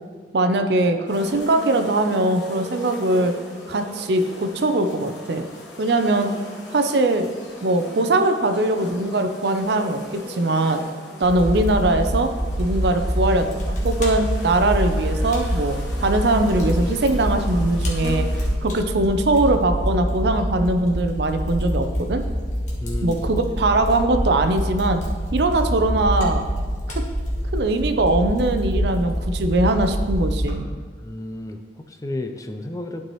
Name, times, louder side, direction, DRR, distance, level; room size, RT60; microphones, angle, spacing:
voice 1, 0.3-3.3 3.7-5.5 5.8-6.3 6.7-7.3 7.6-10.8 11.2-12.3 12.6-18.3 18.6-22.2 23.0-25.0 25.3-26.5 27.0-27.1 27.5-30.6, right 2 dB, 65° right, 7 dB, 0.5 m, -21 dB
sound 1, 1.1-18.6, left 1 dB, 75° left, 1.2 m, -38 dB
Fire, 11.2-30.5, equal, 40° left, 1.4 m, -25 dB
voice 2, 22.8-23.2 31.0-33.0, left 1 dB, 20° left, 6 dB, 0.4 m, -32 dB
11.5 x 4.7 x 3.0 m, 1.5 s
head